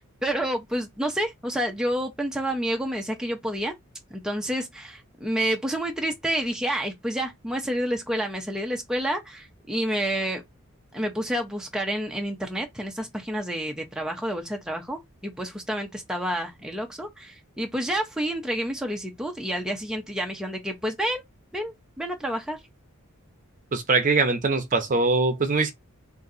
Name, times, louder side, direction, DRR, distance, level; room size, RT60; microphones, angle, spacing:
voice 1, 0.0-3.7 4.1-10.4 10.9-21.2 21.5-22.6, equal, 5° right, 0.7 m, -29 dB
voice 2, 23.7-25.7, right 3 dB, 35° right, 0.8 m, -22 dB
3.8 x 2.7 x 4.0 m
head